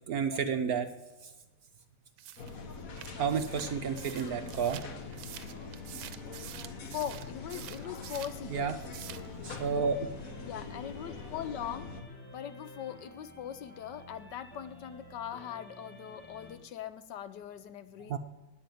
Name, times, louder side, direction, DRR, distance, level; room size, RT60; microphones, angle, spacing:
voice 1, 0.1-0.9 3.2-4.8 8.5-8.8 9.4-10.1 18.1-18.2, right 6 dB, 60° right, 8 dB, 1.0 m, -31 dB
sound 1, 2.2-8.4 8.7-9.3, right 12 dB, 80° right, 1.4 m, -47 dB
sound 2, 2.4-12.0, left 4 dB, 50° left, 1.5 m, -44 dB
sound 3, 3.6-16.6, left 2 dB, 5° left, 1.9 m, -51 dB
voice 2, 6.8-8.8 10.4-11.9 12.3-18.2, left 9 dB, 70° left, 12 dB, 1.2 m, -41 dB
12.0 x 9.3 x 9.2 m, 1.1 s
omnidirectional pair, 2.1 m